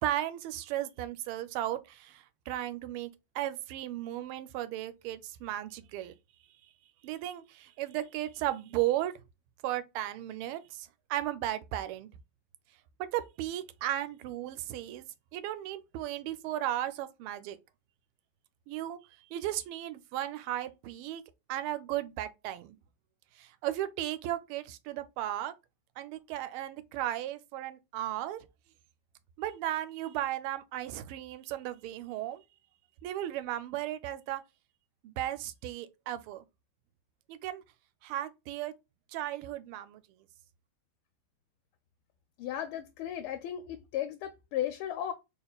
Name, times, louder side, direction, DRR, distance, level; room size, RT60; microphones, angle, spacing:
voice 1, 0.0-3.1 3.3-6.1 7.0-9.1 9.6-12.1 13.0-15.0 15.3-17.6 18.7-19.0 19.3-21.2 21.5-22.8 23.4-25.5 26.0-28.4 29.4-32.4 33.0-34.4 35.0-36.4 37.3-37.6 38.0-38.7 39.1-40.0, right 13 dB, 90° right, 1.5 m, -35 dB
voice 2, 42.4-45.1, left 11 dB, 85° left, 1.5 m, -35 dB
4.1 x 3.5 x 2.3 m
omnidirectional pair, 2.3 m